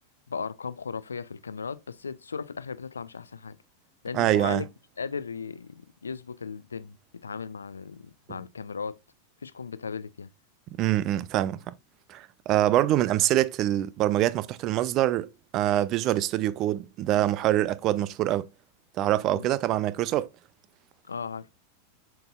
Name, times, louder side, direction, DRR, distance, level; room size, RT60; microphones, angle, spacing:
voice 1, 0.3-3.6 4.0-4.6 5.0-7.0 7.2-9.0 9.4-10.3 19.3-19.5 21.0-21.5, left 5 dB, 75° left, 0.5 m, -36 dB
voice 2, 4.1-4.6 10.8-11.7 12.1-18.5 19.0-20.3, right 13 dB, 35° right, 0.5 m, -25 dB
7.8 x 5.3 x 2.2 m
figure-of-eight pair, 90°, 0 cm